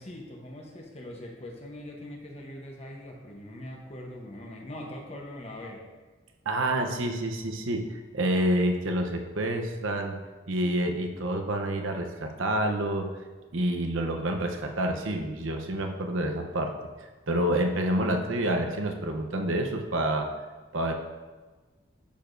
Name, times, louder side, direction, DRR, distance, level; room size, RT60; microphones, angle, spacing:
voice 1, 0.0-5.8, left 1 dB, 30° left, 0 dB, 0.9 m, -42 dB
voice 2, 6.5-10.2 10.5-13.1 13.5-16.7 17.3-20.3 20.7-20.9, right 1 dB, 90° right, 3 dB, 0.8 m, -28 dB
10.0 x 6.8 x 2.6 m, 1.3 s
head